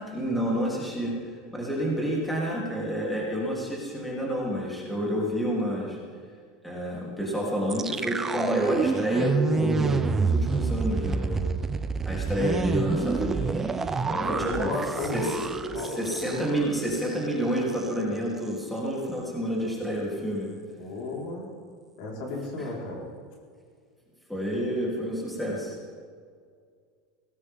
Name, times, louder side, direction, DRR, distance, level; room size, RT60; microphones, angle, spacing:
voice 1, 0.0-6.0 6.6-11.4 12.0-13.6 14.4-14.7 15.0-15.4 15.6-20.5 22.6-22.7 24.3-25.8, equal, 5° left, -4 dB, 3.2 m, -29 dB
sound 1, 7.7-16.7 17.0-17.2 17.6-17.9, right 4 dB, 15° right, 0.6 m, -28 dB
voice 2, 14.1-15.9 20.8-21.5 22.0-23.1, left 2 dB, 60° left, -2 dB, 4.4 m, -33 dB
18.0 x 17.0 x 3.7 m, 2.1 s
supercardioid pair, 150°, 2 cm